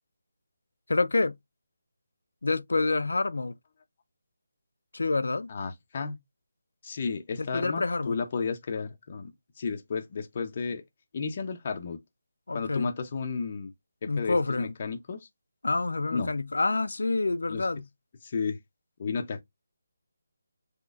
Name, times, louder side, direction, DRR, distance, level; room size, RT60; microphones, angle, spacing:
voice 1, 0.9-1.4 2.4-3.6 4.9-5.5 7.4-8.2 12.5-12.9 14.1-14.7 15.6-17.9, left 3 dB, 85° left, 0.5 m, -27 dB
voice 2, 5.5-6.2 6.8-9.3 9.6-10.8 11.1-12.0 12.5-13.7 14.0-15.3 16.1-16.3 17.5-17.6 18.2-18.6 19.0-19.4, left 5 dB, 30° left, 0.6 m, -32 dB
3.9 x 2.9 x 2.3 m
hypercardioid pair, 175°, 0 cm